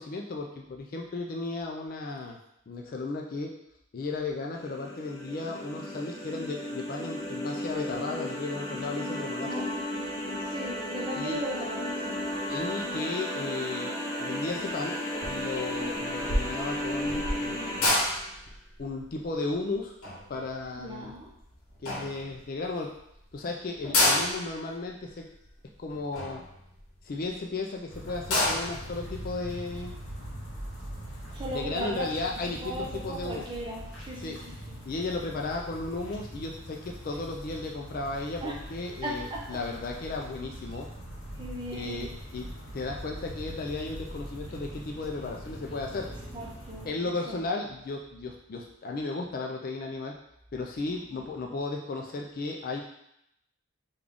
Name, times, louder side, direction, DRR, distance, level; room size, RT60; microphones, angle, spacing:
voice 1, 0.0-2.4 2.7-3.5 3.9-9.6 11.2-11.4 12.5-13.9 14.2-15.0 15.2-18.0 18.8-19.9 20.3-21.1 21.8-22.9 23.3-25.3 25.8-26.4 27.0-29.9 31.5-33.4 34.2-34.4 34.8-40.9 41.7-42.1 42.3-42.5 42.7-46.1 46.9-50.1 50.5-52.8, left 3 dB, 40° left, 0 dB, 0.3 m, -35 dB
sound 1, 4.5-17.9, left 1 dB, 20° left, 0.7 m, -34 dB
voice 2, 9.4-12.2 20.7-21.3 31.3-32.1 32.5-34.4 34.7-34.8 38.4-38.6 39.0-39.6 41.4-42.1 46.3-47.4 51.1-51.2, right 1 dB, 20° right, -4 dB, 0.6 m, -38 dB
sound 2, 15.2-15.5 15.8-21.4 21.8-22.6 23.1-23.2 23.3-23.4 23.7-27.3 27.8-27.9 28.1-28.9, left 1 dB, 75° left, 0.9 m, -29 dB
sound 3, 27.9-46.9, equal, 55° left, 1.2 m, -42 dB
3.6 x 2.4 x 3.4 m, 0.78 s
head